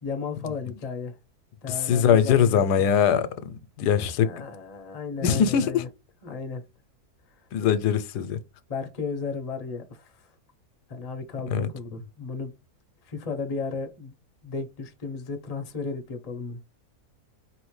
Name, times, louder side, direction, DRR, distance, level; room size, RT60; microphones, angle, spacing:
voice 1, 0.0-1.1 1.6-2.6 3.9-5.9 6.2-6.6 8.7-10.2 10.9-12.5 13.0-14.1 14.4-16.6, left 4 dB, 35° left, 0.6 m, -34 dB
voice 2, 1.7-4.3 5.2-5.8 7.5-8.4 11.5-11.7, left 8 dB, 85° left, 1.1 m, -22 dB
4.3 x 3.0 x 3.1 m
omnidirectional pair, 1.7 m